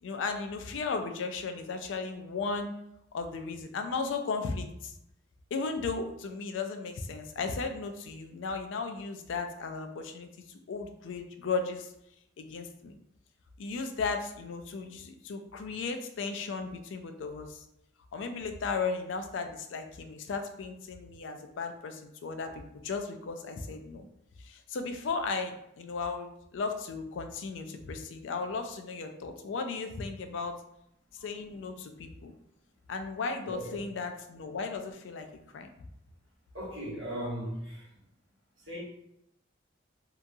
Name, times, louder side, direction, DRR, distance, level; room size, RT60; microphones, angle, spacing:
voice 1, 0.0-2.7 3.1-4.9 5.5-10.3 10.7-11.9 12.4-13.0 13.6-17.6 18.1-24.1 24.4-30.6 31.2-32.3 32.9-35.3 35.5-35.7, left 4 dB, 75° left, 6 dB, 0.4 m, -35 dB
voice 2, 33.4-33.8 36.5-38.0 38.6-38.8, equal, 75° right, -5 dB, 1.2 m, -38 dB
2.8 x 2.3 x 2.6 m, 0.79 s
head